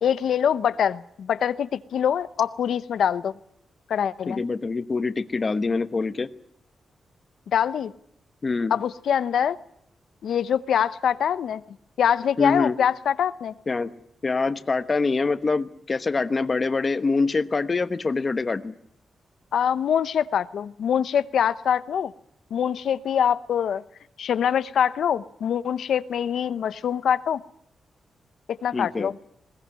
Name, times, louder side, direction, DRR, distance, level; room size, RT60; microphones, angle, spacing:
voice 1, 0.0-3.3 3.9-4.4 7.5-7.9 8.7-9.6 10.2-11.6 12.0-13.5 19.5-22.1 22.5-23.8 24.2-27.4 28.5-29.1, left 8 dB, 80° left, 14 dB, 0.9 m, -24 dB
voice 2, 4.3-6.3 8.4-8.7 12.4-12.8 13.7-13.9 14.2-18.7 28.7-29.1, left 4 dB, 30° left, 12 dB, 1.0 m, -25 dB
21.0 x 19.5 x 9.8 m, 0.70 s
wide cardioid pair, 155°, 0 cm